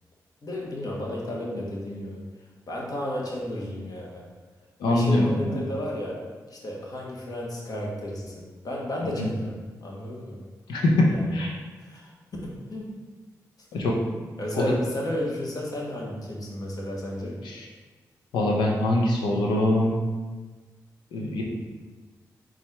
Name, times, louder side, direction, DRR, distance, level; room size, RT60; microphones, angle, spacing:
voice 1, 0.4-2.2 2.7-4.3 4.9-6.2 6.5-10.4 11.1-11.4 11.8-12.1 12.4-12.9 14.4-17.4, left 1 dB, 55° left, -3 dB, 1.1 m, -33 dB
voice 2, 4.8-5.6 9.2-9.3 10.7-11.5 13.7-13.9 14.5-14.6 17.4-17.6 18.3-19.9 21.1-21.4, left 1 dB, 90° left, -1 dB, 0.7 m, -23 dB
4.1 x 2.5 x 4.5 m, 1.3 s
supercardioid pair, 45°, 8 cm